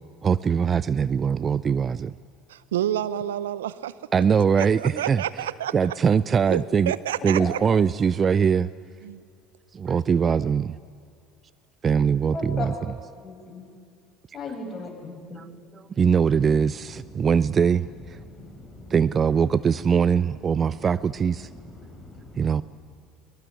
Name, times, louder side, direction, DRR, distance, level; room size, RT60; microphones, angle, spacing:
voice 1, 0.2-2.1 4.1-5.2 5.7-6.9 7.2-8.7 9.7-10.8 11.8-12.7 16.0-17.8 18.9-21.5 22.4-22.6, right 6 dB, 35° right, 18 dB, 0.5 m, -22 dB
voice 2, 2.5-3.9 4.6-5.7 6.5-7.6 9.0-9.2, right 11 dB, 80° right, 17 dB, 0.7 m, -29 dB
voice 3, 12.3-12.7 13.2-13.7 14.3-15.4, left 4 dB, 30° left, 1 dB, 7.8 m, -35 dB
voice 4, 16.1-22.6, left 2 dB, 10° left, 2 dB, 6.8 m, -45 dB
22.5 x 22.5 x 9.9 m, 2.3 s
hypercardioid pair, 70°, 0 cm